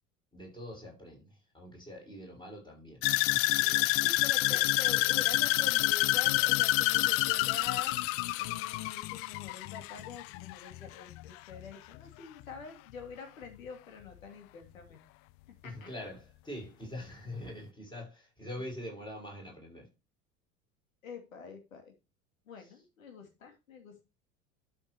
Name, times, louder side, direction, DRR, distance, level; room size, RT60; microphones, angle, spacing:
voice 1, 0.3-3.9 4.5-4.6 15.6-19.9, left 1 dB, 10° left, 6.1 m, -44 dB
sound 1, 3.0-11.2 11.5-12.0 12.4-12.5, left 20 dB, 35° left, 0.4 m, -28 dB
voice 2, 4.0-8.0 8.4-15.0 15.5-16.1 21.0-21.9 22.5-24.1, left 6 dB, 70° left, 2.6 m, -46 dB
12.0 x 6.5 x 2.9 m
figure-of-eight pair, 70°, 41 cm